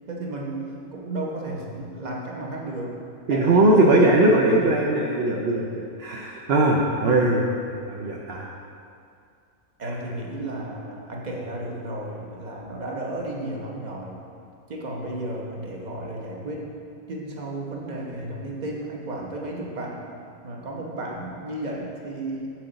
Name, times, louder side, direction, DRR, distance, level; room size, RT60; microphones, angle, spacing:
voice 1, 0.1-3.0 3.3-4.8 9.8-14.2 14.7-16.7 17.1-20.0 20.4-22.5, right 1 dB, 35° right, -2 dB, 1.0 m, -33 dB
voice 2, 3.3-7.5 7.9-8.5 9.8-9.9, right 2 dB, 55° right, -1 dB, 0.7 m, -20 dB
7.6 x 7.3 x 3.9 m, 2.4 s
omnidirectional pair, 1.5 m